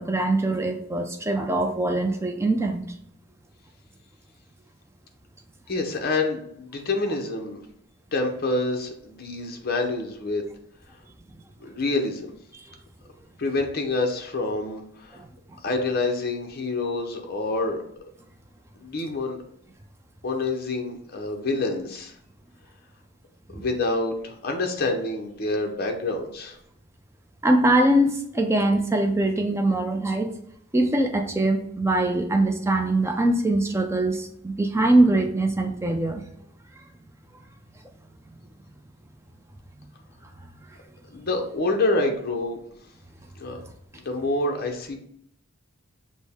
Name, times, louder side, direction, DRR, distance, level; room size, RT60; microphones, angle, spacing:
voice 1, 0.0-2.8 12.7-12.8 15.1-15.6 27.4-30.3 30.7-36.2, right 1 dB, 10° right, 4 dB, 0.4 m, -22 dB
voice 2, 5.7-7.6 8.1-10.4 11.6-12.3 13.4-15.2 15.6-17.8 18.8-19.4 20.2-22.2 23.5-26.6 41.1-42.6 43.3-43.6 43.9-45.0, left 2 dB, 45° left, 2 dB, 0.7 m, -27 dB
6.2 x 2.1 x 3.5 m, 0.69 s
head